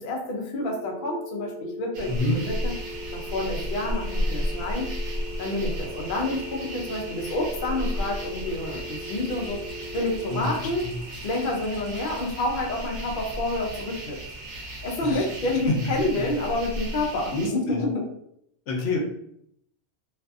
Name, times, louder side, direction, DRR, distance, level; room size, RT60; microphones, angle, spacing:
voice 1, 0.0-2.7 3.1-4.9 5.4-9.6 9.9-10.9 11.1-14.2 14.8-18.0, left 2 dB, 55° left, 0 dB, 0.7 m, -28 dB
sound 1, 0.6-10.6, equal, 55° right, 0.8 m, -39 dB
sound 2, 1.9-17.5, equal, 85° right, 0.9 m, -34 dB
voice 2, 2.1-2.4 10.3-10.9 15.0-15.2 15.7-15.8 17.3-17.8 18.7-19.0, left 2 dB, 85° left, 0 dB, 1.0 m, -27 dB
2.6 x 2.4 x 2.4 m, 0.72 s
omnidirectional pair, 1.2 m